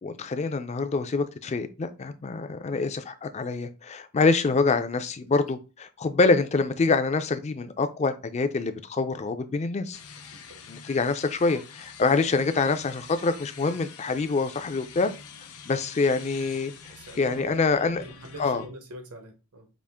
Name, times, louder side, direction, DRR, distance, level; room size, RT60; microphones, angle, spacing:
voice 1, 0.0-10.0 10.7-15.1 15.7-16.7 17.2-18.0 18.4-18.6, left 4 dB, 30° left, 0.4 m, -25 dB
sound 1, 9.9-18.7, left 5 dB, 80° left, 0.7 m, -46 dB
voice 2, 10.3-10.7 16.9-17.6 17.9-19.7, right 1 dB, 85° right, 1.0 m, -44 dB
5.0 x 2.4 x 3.5 m
head